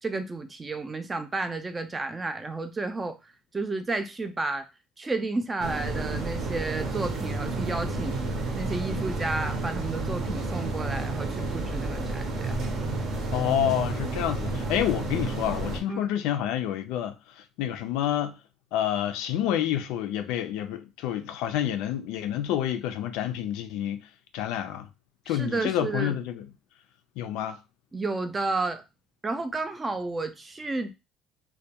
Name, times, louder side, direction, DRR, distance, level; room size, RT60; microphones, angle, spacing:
voice 1, 0.0-3.2 3.5-4.7 5.0-8.2 8.5-12.6 15.9-16.0 25.3-26.1 27.9-28.8 29.2-30.9, right 3 dB, 20° right, 0.3 m, -31 dB
sound 1, 5.6-15.8, right 2 dB, 55° right, 0.6 m, -31 dB
voice 2, 13.3-17.2 17.6-18.4 18.7-24.1 24.3-24.9 25.3-26.4 27.2-27.6, left 11 dB, 85° left, 0.3 m, -28 dB
2.2 x 2.1 x 2.8 m
cardioid pair, 135°, 0 cm